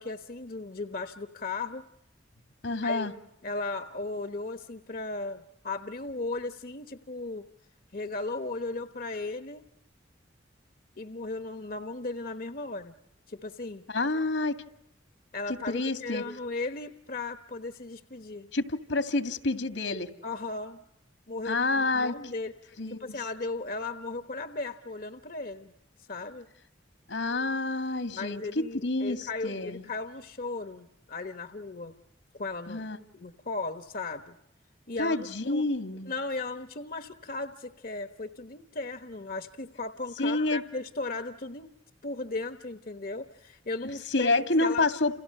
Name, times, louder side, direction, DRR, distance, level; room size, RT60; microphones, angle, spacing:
voice 1, 0.0-1.8 2.8-3.1 3.4-7.5 7.9-9.7 11.0-12.9 13.3-13.8 15.3-18.5 20.2-20.8 21.3-22.7 23.0-25.7 26.1-26.5 28.1-31.9 32.3-32.9 33.1-34.4 34.9-35.7 36.1-41.7 42.0-44.3 44.6-44.9, left 3 dB, 45° left, 9 dB, 1.1 m, -36 dB
voice 2, 2.6-3.1 13.9-14.6 15.7-16.2 18.5-20.1 21.5-22.1 22.8-23.2 27.1-29.8 32.7-33.0 35.0-36.1 40.2-40.6 44.1-45.1, left 2 dB, 75° left, 9 dB, 2.2 m, -28 dB
30.0 x 29.5 x 6.6 m, 0.81 s
head